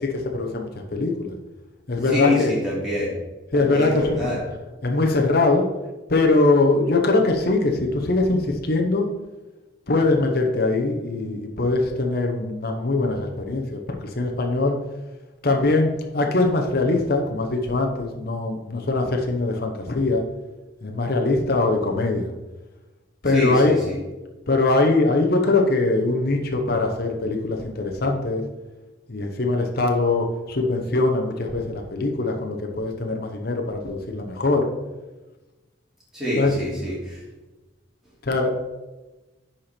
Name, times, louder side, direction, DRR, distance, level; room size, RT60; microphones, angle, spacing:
voice 1, 0.0-1.3 1.9-2.6 3.5-4.2 4.8-5.7 6.1-9.1 9.9-14.8 15.4-20.2 20.8-22.3 23.2-23.8 24.5-28.4 29.1-34.7 36.4-36.5 38.2-38.5, left 2 dB, 50° left, 2 dB, 0.9 m, -22 dB
voice 2, 2.1-3.1 3.5-4.4 23.2-24.0 36.1-37.2, left 1 dB, ahead, -8 dB, 2.8 m, -26 dB
10.0 x 4.4 x 4.4 m, 1.1 s
head